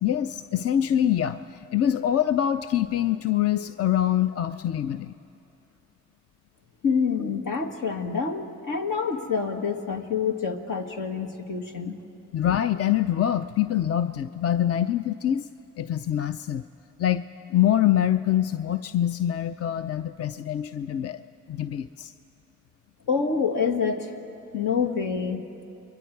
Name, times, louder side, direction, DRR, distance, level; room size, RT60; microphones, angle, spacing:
voice 1, 0.0-5.1 12.3-15.5 15.8-16.6 17.0-17.2 17.5-21.2 21.5-22.1, left 11 dB, 45° left, 11 dB, 0.6 m, -24 dB
voice 2, 6.8-12.0 23.1-24.2 24.5-25.4, left 5 dB, 70° left, 4 dB, 1.9 m, -27 dB
30.0 x 22.0 x 4.7 m, 2.8 s
supercardioid pair, 55°, 34 cm